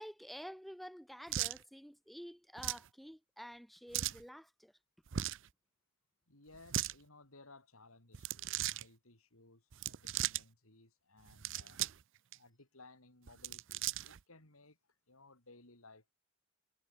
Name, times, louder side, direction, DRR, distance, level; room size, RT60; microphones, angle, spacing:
voice 1, 0.0-4.7, equal, ahead, 3.3 m, -50 dB
sound 1, 1.3-1.6 2.6-2.9 3.9-4.2 5.1-5.5 6.5-6.9 8.1-8.8 9.7-10.4 11.3-12.0 12.3-12.4 13.3-14.2, right 12 dB, 60° right, 0.5 m, -37 dB
voice 2, 6.3-11.8 12.3-16.1, left 2 dB, 85° left, 5.5 m, -61 dB
head